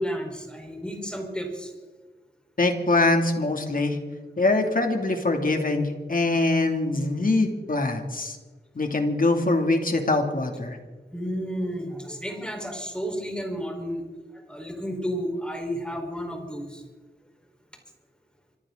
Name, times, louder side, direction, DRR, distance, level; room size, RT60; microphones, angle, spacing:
voice 1, 0.0-1.7 11.1-14.0 14.3-16.8, equal, 5° left, 1 dB, 4.5 m, -32 dB
voice 2, 2.6-4.0 4.4-8.4 8.7-10.8, left 2 dB, 50° left, 4 dB, 2.7 m, -23 dB
25.5 x 14.0 x 3.9 m, 1.3 s
wide cardioid pair, 85°, 18 cm